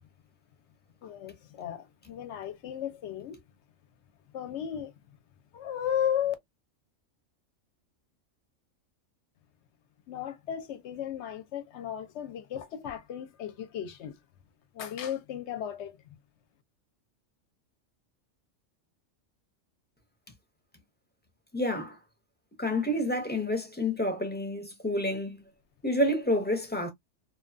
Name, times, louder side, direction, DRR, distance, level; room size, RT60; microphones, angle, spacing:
voice 1, 1.0-3.4 4.3-4.9 5.5-6.3 10.1-14.2 14.7-16.0, left 9 dB, 65° left, 0.8 m, -35 dB
voice 2, 21.5-22.0 22.6-25.4 25.8-26.9, left 1 dB, 10° left, 0.5 m, -29 dB
2.8 x 2.3 x 2.4 m
omnidirectional pair, 1.3 m